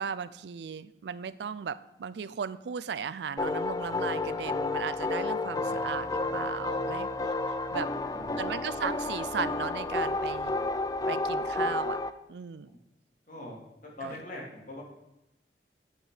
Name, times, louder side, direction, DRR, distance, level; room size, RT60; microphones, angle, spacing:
voice 1, 0.0-7.3 7.7-7.9 8.4-10.6 11.1-12.0 12.3-12.7 14.0-14.2, right 6 dB, 75° right, 16 dB, 0.4 m, -36 dB
sound 1, 3.4-12.1, left 2 dB, 20° left, 0.4 m, -31 dB
voice 2, 7.7-8.4 12.7-12.8 13.3-14.8, left 1 dB, 50° left, -2 dB, 2.8 m, -44 dB
10.5 x 6.3 x 4.9 m, 0.91 s
head